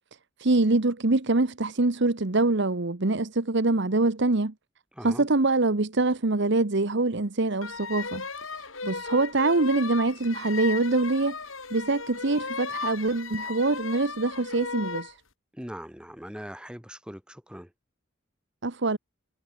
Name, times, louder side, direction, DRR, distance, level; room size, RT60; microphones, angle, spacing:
voice 1, 0.4-4.5 5.0-8.2 8.8-11.4 11.7-15.1 18.6-19.0, right 2 dB, 60° right, 1.2 m, -24 dB
voice 2, 4.9-5.3 15.5-17.7, equal, 5° right, 5.1 m, -41 dB
sound 1, 7.6-15.1, left 4 dB, 75° left, 6.1 m, -36 dB
head